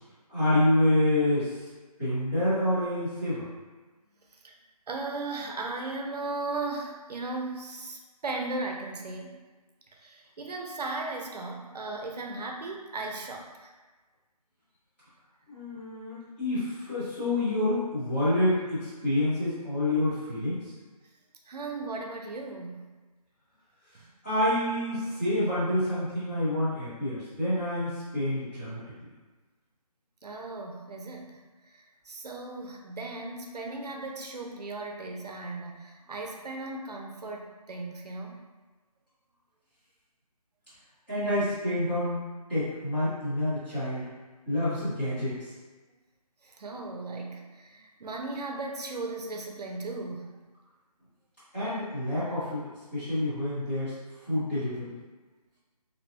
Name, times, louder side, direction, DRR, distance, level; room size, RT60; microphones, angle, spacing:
voice 1, 0.3-1.5 2.0-3.5 15.5-20.7 24.2-28.8 41.1-42.2 42.5-44.1 44.5-45.5 51.5-52.6 52.9-53.9 54.3-54.9, left 1 dB, 15° left, -16 dB, 0.9 m, -27 dB
voice 2, 4.9-9.4 9.9-13.7 15.8-16.0 21.5-22.9 30.2-38.4 46.4-50.4, right 3 dB, 85° right, 1 dB, 0.5 m, -37 dB
2.7 x 2.2 x 2.7 m, 1.3 s
figure-of-eight pair, 175°, 20 cm